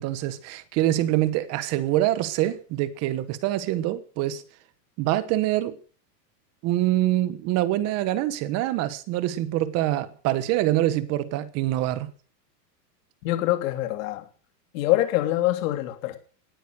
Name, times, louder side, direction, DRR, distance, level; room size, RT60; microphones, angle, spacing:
voice 1, 0.0-4.4 5.0-5.8 6.6-12.1, right 14 dB, 30° right, 1.3 m, -25 dB
voice 2, 13.2-14.3 14.7-16.2, left 15 dB, 50° left, 3.2 m, -24 dB
18.5 x 9.4 x 6.6 m
supercardioid pair, 160°, 50 cm